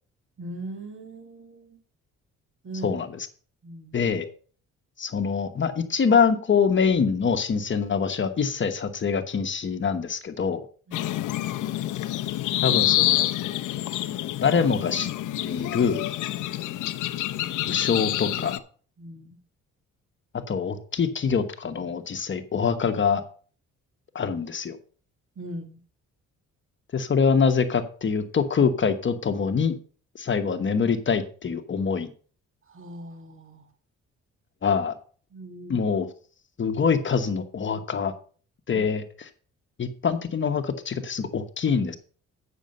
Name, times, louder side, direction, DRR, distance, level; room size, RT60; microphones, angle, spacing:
voice 1, 0.4-1.8 2.6-3.0 3.6-4.0 10.9-11.2 16.5-16.8 19.0-19.4 25.4-25.8 32.7-33.7 35.3-35.8 38.7-38.8, right 1 dB, 45° right, 6 dB, 2.0 m, -40 dB
voice 2, 2.8-3.3 3.9-4.2 5.0-10.6 12.6-13.3 14.4-15.1 15.4-16.0 17.6-18.5 20.5-23.2 24.1-24.8 26.9-29.8 30.2-32.1 34.6-34.9 35.7-36.1 36.6-38.1 38.7-39.0 39.8-42.0, left 6 dB, 40° left, 8 dB, 1.1 m, -24 dB
sound 1, 10.9-18.6, left 14 dB, 80° left, 0.7 m, -27 dB
9.1 x 6.3 x 5.4 m, 0.43 s
cardioid pair, 90°, 30 cm